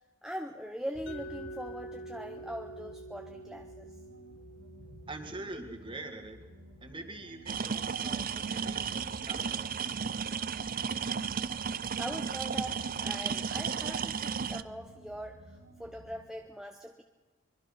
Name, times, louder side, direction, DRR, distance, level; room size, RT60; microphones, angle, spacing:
voice 1, 0.2-3.9 12.0-17.0, equal, 5° right, 3 dB, 0.9 m, -41 dB
sound 1, 0.9-16.3, equal, 80° right, 5.6 m, -53 dB
Mallet percussion, 1.1-6.9, right 2 dB, 55° left, 1.8 m, -47 dB
voice 2, 5.1-6.4 6.8-9.8, right 2 dB, 25° right, 5 dB, 2.2 m, -44 dB
sound 2, 7.5-14.6, right 6 dB, 40° right, 0.6 m, -34 dB
24.0 x 22.5 x 5.8 m, 1.3 s
head